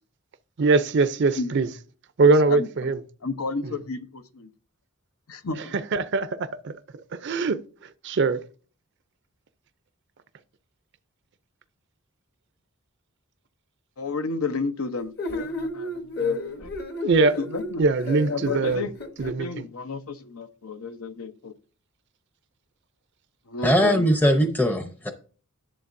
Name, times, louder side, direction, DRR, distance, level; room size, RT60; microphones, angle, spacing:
voice 1, 0.6-1.7 2.2-3.0 3.6-3.7 5.7-6.7 7.1-7.6 8.0-8.4 17.0-17.3 17.8-18.8 19.2-19.5, right 3 dB, 55° right, 0.5 m, -22 dB
voice 2, 2.2-2.9 3.2-4.5 5.3-5.7 14.0-16.7 17.4-17.8 18.3-18.9 19.2-21.5 23.5-24.1, left 4 dB, 85° left, 0.8 m, -32 dB
sound 1, 15.2-19.3, left 3 dB, 50° left, 1.1 m, -32 dB
voice 3, 23.6-25.1, equal, 10° left, 0.6 m, -20 dB
11.0 x 7.4 x 2.6 m
head